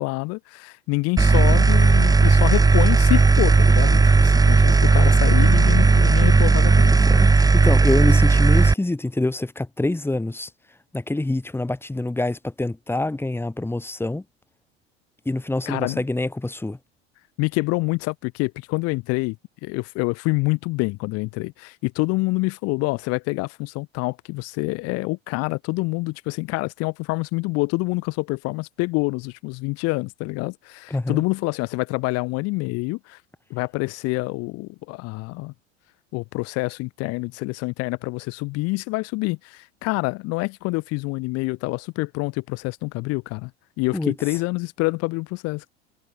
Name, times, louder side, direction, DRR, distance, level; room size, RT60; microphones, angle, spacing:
voice 1, 0.0-7.0 15.7-16.0 17.4-19.4 19.6-33.2 33.5-35.5 36.1-43.5 43.8-45.7, left 25 dB, 50° left, 1.1 m, -26 dB
sound 1, 1.2-8.7, right 3 dB, 10° right, 1.2 m, -15 dB
voice 2, 6.9-10.5 10.9-14.2 15.3-16.8 30.9-31.2 43.9-44.2, left 2 dB, 5° left, 2.4 m, -26 dB
figure-of-eight pair, 75°, 33 cm